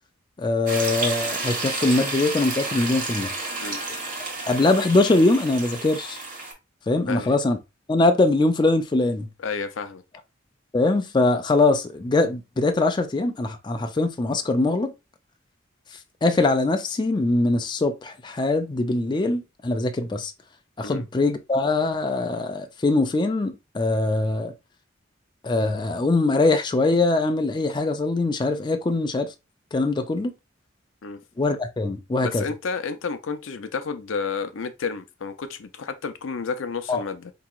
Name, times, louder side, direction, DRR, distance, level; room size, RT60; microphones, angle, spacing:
voice 1, 0.4-3.3 4.5-6.2 6.9-7.6 7.9-9.3 10.7-14.9 16.2-20.3 20.8-24.5 25.4-29.3 29.7-30.3 31.4-32.4 36.9-37.0, left 2 dB, 25° left, 0.4 m, -22 dB
sound 1, 0.7-6.5, right 3 dB, 45° right, 1.4 m, -31 dB
voice 2, 9.4-10.0 20.8-21.1 31.0-31.2 32.2-37.3, left 5 dB, 80° left, 0.5 m, -31 dB
4.6 x 2.9 x 2.3 m
head